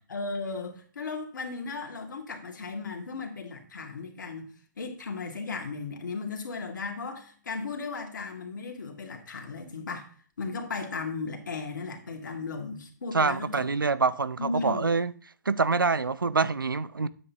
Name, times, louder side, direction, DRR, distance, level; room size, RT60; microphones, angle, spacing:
voice 1, 0.1-10.1 10.4-13.9 14.4-14.9, left 4 dB, 65° left, 2.1 m, -36 dB
voice 2, 13.1-15.1 15.5-17.1, right 4 dB, 85° right, 0.6 m, -26 dB
9.7 x 7.9 x 2.8 m
figure-of-eight pair, 130°, 11 cm